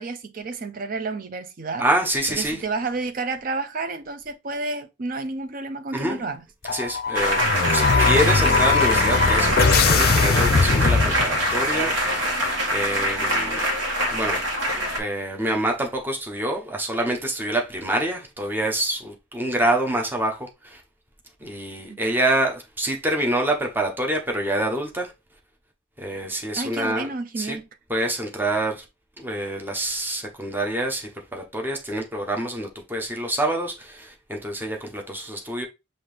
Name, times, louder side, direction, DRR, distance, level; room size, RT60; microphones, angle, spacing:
voice 1, 0.0-1.9 2.4-6.4 21.9-22.0 26.6-27.7, right 3 dB, 45° right, 0.5 m, -30 dB
voice 2, 1.8-2.6 5.9-6.2 6.7-7.4 7.7-11.9 12.7-13.6 14.1-14.4 15.0-20.8 21.4-25.1 26.0-27.1 27.4-27.6 27.9-28.8 29.2-35.7, right 1 dB, 10° right, 0.8 m, -26 dB
sound 1, 6.6-11.7, left 5 dB, 50° left, 0.5 m, -21 dB
sound 2, 7.2-15.0, equal, 75° right, 1.3 m, -23 dB
5.7 x 2.6 x 3.3 m
head